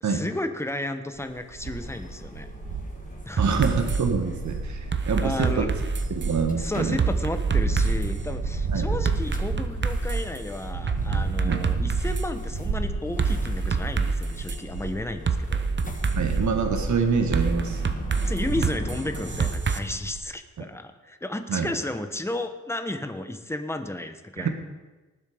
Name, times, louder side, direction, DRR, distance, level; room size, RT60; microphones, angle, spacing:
voice 1, 0.0-2.5 3.2-3.4 5.2-5.7 6.6-15.7 18.3-24.5, left 1 dB, 10° left, 8 dB, 1.1 m, -33 dB
sound 1, 1.2-15.3 15.6-20.2, right 4 dB, 85° right, 1.5 m, -32 dB
sound 2, 1.6-19.5, left 2 dB, 25° left, 1.5 m, -41 dB
sound 3, 3.4-4.0 4.9-6.4 7.0-8.2 9.0-10.4 10.9-12.3 13.2-14.6 15.3-16.4 17.3-19.8, right 5 dB, 35° right, 0.9 m, -27 dB
voice 2, 3.4-5.8 6.1-7.0 8.7-8.8 11.4-11.6 16.2-17.9 21.5-21.7 24.4-24.5, right 5 dB, 70° right, 4 dB, 1.5 m, -26 dB
18.5 x 7.5 x 5.0 m, 1.2 s
cardioid pair, 95°, 31 cm